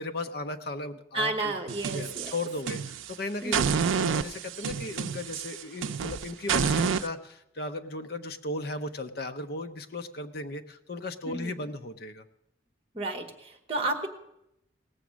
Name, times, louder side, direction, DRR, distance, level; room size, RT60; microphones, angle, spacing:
voice 1, 0.0-1.5 1.9-3.7 4.0-12.2, left 2 dB, 50° left, 8 dB, 0.7 m, -36 dB
voice 2, 1.1-2.4 3.4-3.8 11.2-11.5 12.9-14.1, right 2 dB, 30° right, 5 dB, 1.2 m, -32 dB
sound 1, 1.7-3.1 3.5-7.1, right 6 dB, 90° right, 0.5 m, -29 dB
17.5 x 7.0 x 6.2 m, 0.84 s
head